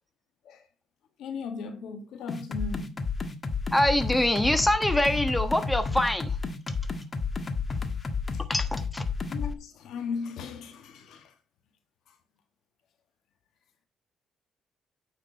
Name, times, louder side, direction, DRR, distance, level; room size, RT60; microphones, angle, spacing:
voice 1, 1.2-3.0 9.3-11.3, left 5 dB, 80° left, 1.8 m, -37 dB
sound 1, 2.3-9.5, left 4 dB, 35° left, 1.4 m, -31 dB
voice 2, 3.7-6.3 8.5-9.0, left 1 dB, 5° left, 1.3 m, -24 dB
9.2 x 6.5 x 4.0 m
cardioid pair, 90°, 0 cm